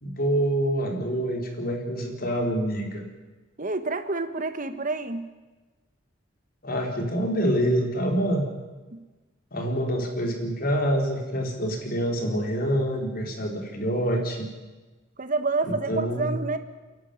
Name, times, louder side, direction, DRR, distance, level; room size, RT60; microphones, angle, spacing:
voice 1, 0.0-3.0 6.6-8.4 9.5-14.5 15.7-16.3, equal, 50° left, 2 dB, 4.2 m, -26 dB
voice 2, 3.6-5.3 8.9-9.0 15.2-16.6, right 3 dB, 45° right, 9 dB, 1.3 m, -28 dB
29.5 x 11.5 x 9.4 m, 1.2 s
head